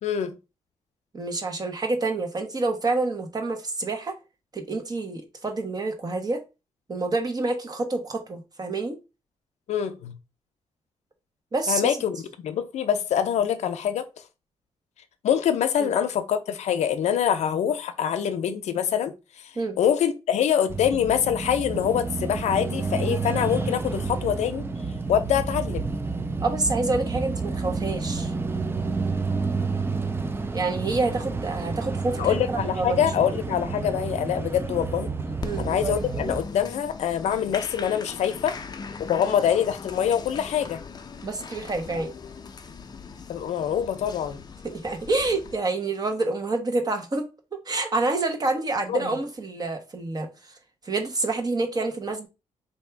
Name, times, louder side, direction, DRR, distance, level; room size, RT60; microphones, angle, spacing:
voice 1, 0.0-0.3 9.7-10.2 11.7-12.2 12.4-14.0 15.2-19.1 19.8-24.7 25.1-25.8 32.2-35.1 35.6-38.6 39.0-40.8 43.3-44.4 48.9-49.1, left 9 dB, 85° left, 0.6 m, -25 dB
voice 2, 1.1-4.1 4.5-6.4 6.9-9.0 11.5-12.0 15.8-15.9 19.6-19.8 26.4-28.3 30.5-33.0 35.4-35.7 41.2-42.1 44.6-50.3 50.9-52.3, right 3 dB, 35° right, 1.0 m, -27 dB
sound 1, 20.7-36.4, right 4 dB, 20° right, 0.5 m, -30 dB
Applause, 35.4-45.6, left 5 dB, 35° left, 0.5 m, -40 dB
3.5 x 2.7 x 4.5 m
cardioid pair, 100°, 11 cm